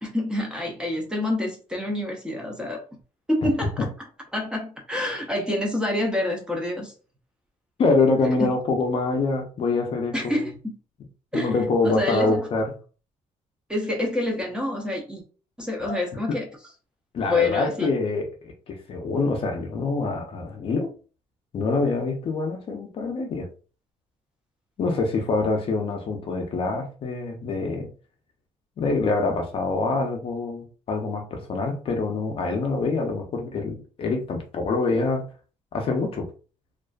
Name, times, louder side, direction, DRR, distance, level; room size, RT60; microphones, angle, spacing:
voice 1, 0.0-2.8 3.3-3.9 4.3-6.9 8.4-8.5 10.1-10.5 11.3-11.5 11.8-12.5 13.7-15.2 15.6-16.5 17.2-17.9, left 2 dB, 5° right, 0.5 m, -27 dB
voice 2, 7.8-10.4 11.3-12.7 15.8-16.0 17.1-20.9 21.5-23.5 24.8-27.9 28.8-35.2 35.7-36.3, left 3 dB, 45° left, 0.5 m, -25 dB
2.4 x 2.3 x 2.2 m
cardioid pair, 155°, 13 cm